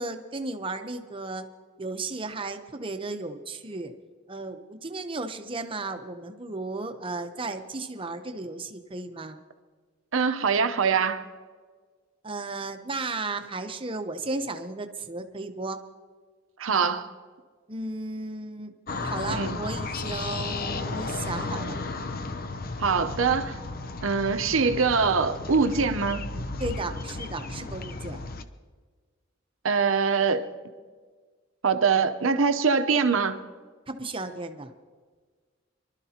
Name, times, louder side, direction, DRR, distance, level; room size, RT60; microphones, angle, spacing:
voice 1, 0.0-1.4 1.8-3.9 4.3-9.4 12.2-15.8 17.7-18.7 19.0-21.8 26.6-28.2 33.9-34.7, right 2 dB, 25° right, 0.8 m, -34 dB
voice 2, 10.1-11.2 16.6-17.1 19.3-19.6 22.8-23.6 24.0-26.2 29.6-30.4 31.6-33.4, right 5 dB, 85° right, 0.8 m, -23 dB
sound 1, 18.9-28.4, left 3 dB, 45° left, 0.7 m, -34 dB
24.5 x 12.5 x 2.9 m
head